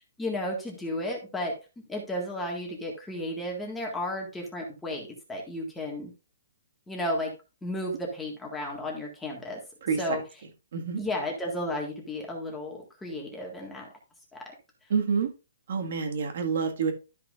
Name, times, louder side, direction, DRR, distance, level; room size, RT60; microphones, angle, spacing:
voice 1, 0.2-1.5 1.9-6.1 6.9-7.3 7.6-9.6 10.0-10.2 11.0-13.9 14.3-14.5, left 1 dB, 5° left, -1 dB, 1.7 m, -33 dB
voice 2, 9.8-10.2 10.7-11.0 14.9-15.3 15.7-16.9, right 6 dB, 50° right, 5 dB, 1.8 m, -28 dB
12.5 x 5.9 x 2.5 m, 0.29 s
hypercardioid pair, 170°, 0 cm